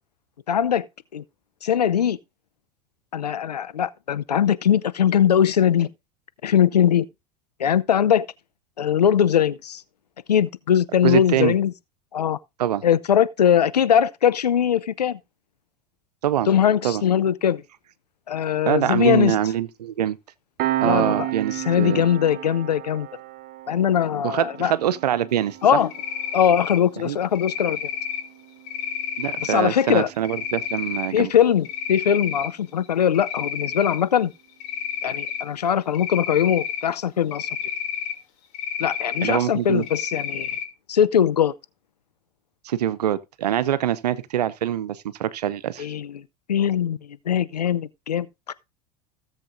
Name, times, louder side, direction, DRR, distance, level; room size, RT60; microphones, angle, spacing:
voice 1, 0.5-0.9 1.1-1.2 1.6-2.2 3.1-5.9 6.4-7.1 7.6-8.3 8.8-9.8 10.3-11.7 12.1-12.4 12.8-15.2 16.5-17.6 18.3-19.4 20.8-23.1 23.7-24.7 25.6-25.9 26.3-27.9 29.4-30.1 31.1-34.3 35.0-37.5 38.8-40.6 40.9-41.5 45.8-46.2 46.5-48.5, left 9 dB, 90° left, 0.6 m, -21 dB
voice 2, 11.0-11.5 12.6-12.8 16.2-16.5 16.8-17.0 18.7-20.2 20.8-22.0 24.2-25.8 27.0-27.2 29.2-31.3 39.2-39.8 42.6-45.9, right 11 dB, 80° right, 0.8 m, -24 dB
Piano, 20.6-31.7, right 15 dB, 50° right, 0.8 m, -34 dB
Cricket, 25.9-26.8 27.4-28.2 28.7-29.5 30.2-31.1 31.5-32.5 32.8-34.0 34.6-35.4 35.9-36.8 37.3-38.1 38.5-39.4 39.8-40.6, left 8 dB, 60° left, 2.7 m, -30 dB
17.0 x 7.3 x 2.6 m
hypercardioid pair, 80°, 20 cm